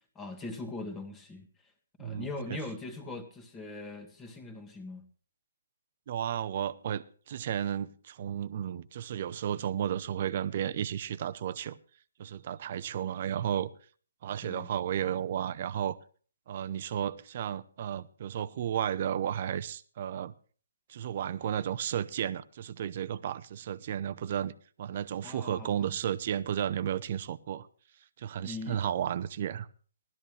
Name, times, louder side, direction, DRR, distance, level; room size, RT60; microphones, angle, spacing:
voice 1, 0.2-1.5 2.0-5.1 14.4-14.7 25.2-26.0 28.4-28.8, left 2 dB, 10° left, 1.9 m, -41 dB
voice 2, 2.0-2.6 6.1-11.8 12.2-13.7 14.2-16.0 16.5-20.3 20.9-27.7 28.2-29.7, right 9 dB, 45° right, 0.8 m, -33 dB
17.5 x 12.5 x 3.3 m
hypercardioid pair, 150°, 0 cm